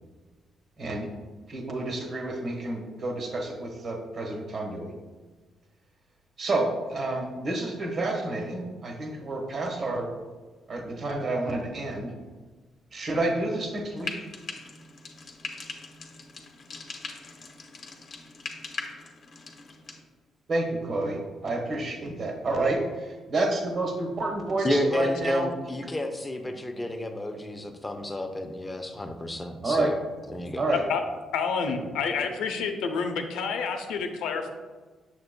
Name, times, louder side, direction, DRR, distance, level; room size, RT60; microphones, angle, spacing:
voice 1, 0.8-1.1 1.5-4.9 6.4-10.1 10.7-12.1 12.9-14.1 20.5-22.8 23.3-25.5 29.6-29.9 30.6-30.8 31.7-31.8, right 2 dB, 50° right, 2 dB, 1.3 m, -29 dB
Frying (food), 14.0-20.0, left 4 dB, 50° left, 0.9 m, -40 dB
voice 2, 24.6-29.9 30.3-30.6, left 1 dB, 20° left, 5 dB, 0.7 m, -30 dB
voice 3, 31.3-34.5, left 5 dB, 90° left, 5 dB, 0.6 m, -29 dB
6.7 x 6.6 x 2.2 m, 1.3 s
cardioid pair, 90°, 0 cm